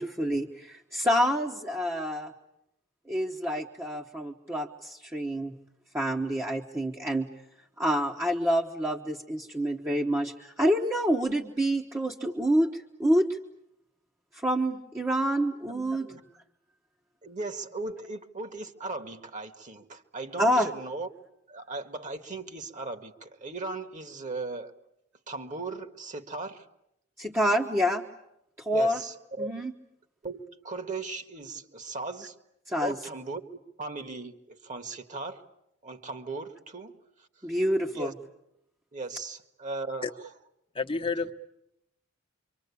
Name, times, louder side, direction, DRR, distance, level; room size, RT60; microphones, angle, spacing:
voice 1, 0.0-2.3 3.1-5.6 5.9-7.3 7.8-13.4 14.3-16.1 20.4-20.7 27.2-28.1 28.6-29.0 29.4-29.7 32.7-33.0 37.4-38.1, equal, 15° right, 1.1 m, -27 dB
voice 2, 15.7-16.2 17.2-21.1 21.5-24.8 25.3-26.6 28.7-29.5 30.2-32.3 32.8-33.4 33.8-35.4 35.8-36.9 37.9-38.1 38.9-40.1, right 3 dB, 40° right, 1.7 m, -37 dB
voice 3, 40.7-41.3, left 4 dB, 25° left, 1.1 m, -29 dB
27.0 x 24.5 x 8.4 m
head